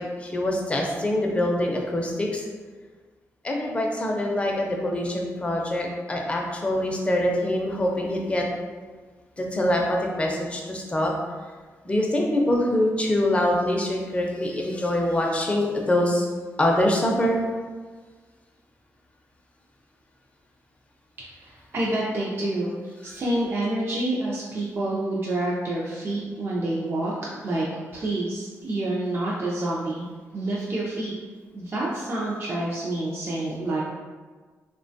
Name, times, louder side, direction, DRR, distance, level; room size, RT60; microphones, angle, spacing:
voice 1, 0.0-2.4 3.4-8.5 9.4-11.1 11.8-16.3 16.6-17.4, left 1 dB, 20° left, 0 dB, 0.5 m, -24 dB
voice 2, 21.4-27.1 27.4-27.7 27.9-30.1 30.3-31.1 31.5-33.8, right 1 dB, 45° right, -5 dB, 0.4 m, -28 dB
3.0 x 2.2 x 2.6 m, 1.4 s
cardioid pair, 90°, 6 cm